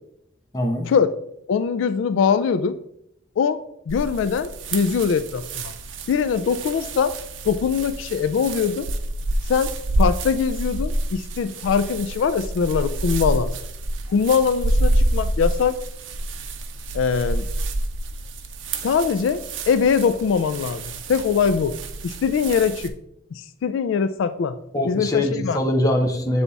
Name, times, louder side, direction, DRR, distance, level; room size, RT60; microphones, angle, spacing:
voice 1, 0.5-0.9 24.7-26.4, left 1 dB, 20° left, 2 dB, 0.8 m, -22 dB
voice 2, 1.5-2.8 3.4-3.6 3.9-5.7 6.1-7.1 7.4-8.9 9.5-9.7 10.0-13.5 14.1-15.8 16.9-17.5 18.8-19.4 19.7-20.8 21.1-21.8 22.0-22.9 23.3-24.6 24.8-25.6, left 6 dB, 80° left, 12 dB, 0.3 m, -22 dB
sound 1, 3.9-22.9, right 1 dB, 80° right, 0.6 m, -28 dB
7.2 x 3.4 x 4.0 m, 0.76 s
head